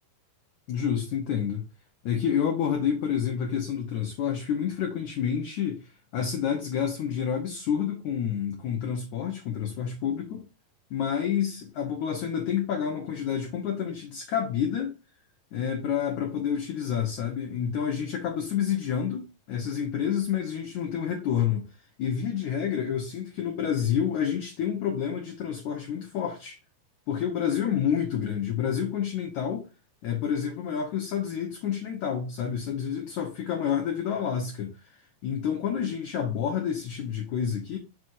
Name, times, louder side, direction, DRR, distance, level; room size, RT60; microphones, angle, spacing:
voice 1, 0.7-1.6 2.0-10.5 10.9-15.0 15.5-21.7 22.0-26.6 27.1-29.7 30.0-34.7 35.2-37.8, left 8 dB, 70° left, 2.0 m, -29 dB
6.2 x 6.0 x 2.6 m
omnidirectional pair, 4.5 m